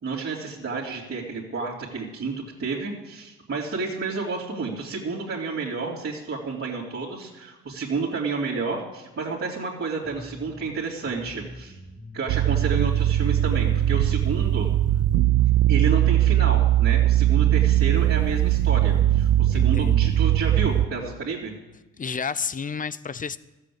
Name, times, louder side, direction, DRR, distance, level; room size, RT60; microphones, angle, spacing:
voice 1, 0.0-2.3 2.6-11.7 12.1-14.7 15.7-21.5, right 4 dB, 45° right, -6 dB, 2.9 m, -30 dB
Bass guitar, 10.0-19.5, equal, 10° right, 2.0 m, -43 dB
sound 1, 12.3-20.9, right 13 dB, 80° right, 0.5 m, -20 dB
voice 2, 19.5-20.1 22.0-23.4, left 6 dB, 25° left, 17 dB, 0.5 m, -31 dB
13.5 x 7.9 x 8.6 m, 1.1 s
cardioid pair, 90°, 30 cm